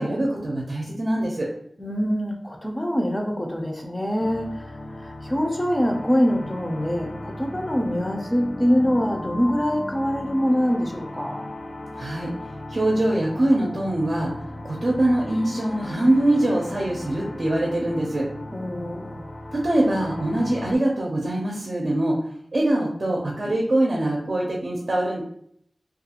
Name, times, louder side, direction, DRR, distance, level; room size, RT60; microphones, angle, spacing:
voice 1, 0.0-1.5 12.0-12.3 12.7-14.3 14.6-18.3 19.5-22.2 22.5-25.2, right 1 dB, 65° right, -2 dB, 0.5 m, -23 dB
voice 2, 1.8-4.6 5.0-11.4 18.5-19.3, equal, 15° left, 3 dB, 0.5 m, -24 dB
sound 1, 4.2-20.7, left 1 dB, 85° left, 0.4 m, -37 dB
2.4 x 2.3 x 2.8 m, 0.67 s
wide cardioid pair, 50°, 0 cm